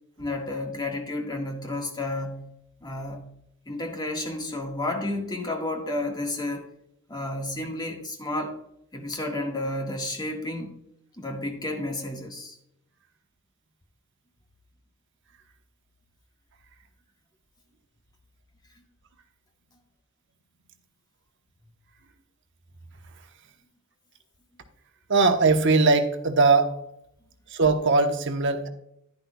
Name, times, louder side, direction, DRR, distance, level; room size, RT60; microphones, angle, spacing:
voice 1, 0.2-2.5 2.8-3.3 3.7-6.7 7.1-8.6 8.9-10.7 11.2-12.6, left 2 dB, 20° left, 1 dB, 1.7 m, -31 dB
voice 2, 25.1-26.8 27.5-28.7, right 3 dB, 60° right, 6 dB, 1.1 m, -20 dB
11.0 x 10.5 x 2.3 m, 0.77 s
head